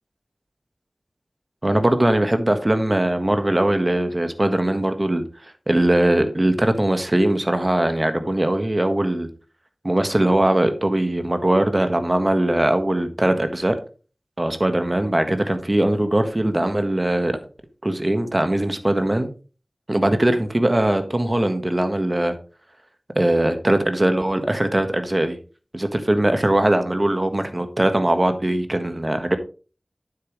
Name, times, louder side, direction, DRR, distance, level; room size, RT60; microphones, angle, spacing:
voice 1, 1.6-5.2 5.7-9.3 9.8-13.8 14.4-17.4 17.8-19.3 19.9-22.4 23.1-25.4 25.7-29.4, right 1 dB, 35° right, 1.5 m, -20 dB
9.6 x 7.8 x 3.2 m
wide cardioid pair, 40°, 0 cm